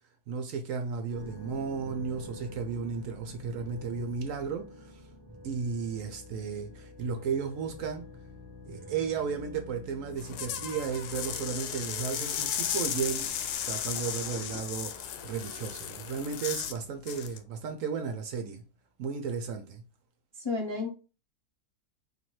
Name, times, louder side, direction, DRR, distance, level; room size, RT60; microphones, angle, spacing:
voice 1, 0.3-5.0 5.4-8.1 8.7-13.3 13.7-18.6 19.0-19.8, right 6 dB, 70° right, 0.9 m, -34 dB
sound 1, 1.1-17.6, left 1 dB, 20° right, 0.6 m, -49 dB
sound 2, 10.1-16.8 17.1-17.4, left 9 dB, 90° left, 1.1 m, -35 dB
sound 3, 12.2-16.9, left 6 dB, 65° left, 0.9 m, -47 dB
voice 2, 20.3-20.9, left 3 dB, 30° left, 0.5 m, -32 dB
4.3 x 2.8 x 3.1 m
omnidirectional pair, 1.6 m